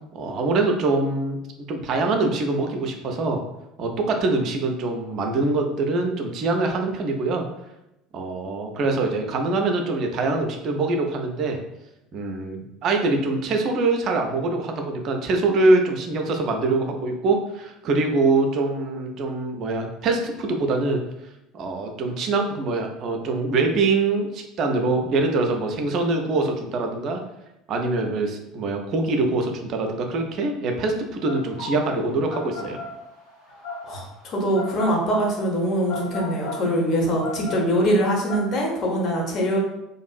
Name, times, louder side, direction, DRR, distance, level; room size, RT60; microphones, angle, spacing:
voice 1, 0.1-1.4 1.7-3.4 3.8-7.4 8.1-11.6 12.1-21.0 21.5-27.2 27.7-32.8, right 3 dB, 45° right, 4 dB, 0.4 m, -24 dB
sound 1, 31.3-38.4, left 3 dB, 85° left, 0.9 m, -35 dB
voice 2, 33.8-39.6, equal, 45° left, 0 dB, 0.7 m, -23 dB
2.6 x 2.4 x 2.3 m, 0.89 s
figure-of-eight pair, 65°, 0 cm